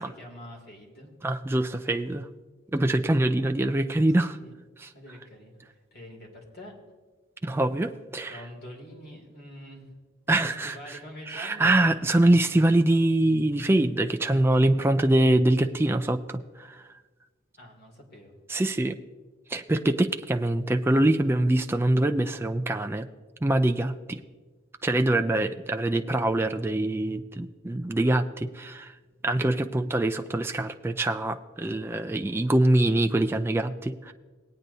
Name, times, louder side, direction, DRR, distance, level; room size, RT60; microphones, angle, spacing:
voice 1, 0.0-1.1 4.2-4.5 4.9-5.6 5.9-6.7 8.3-9.9 10.3-12.3 17.6-18.3 29.5-29.6, equal, 50° left, 0 dB, 2.5 m, -45 dB
voice 2, 1.2-2.3 2.7-4.4 4.8-4.9 7.4-8.4 10.3-11.0 11.3-16.9 18.5-19.0 19.5-23.1 23.4-24.2 24.8-28.9 29.2-34.1, right 1 dB, 10° right, 6 dB, 0.3 m, -24 dB
19.5 x 8.9 x 2.7 m, 1.3 s
head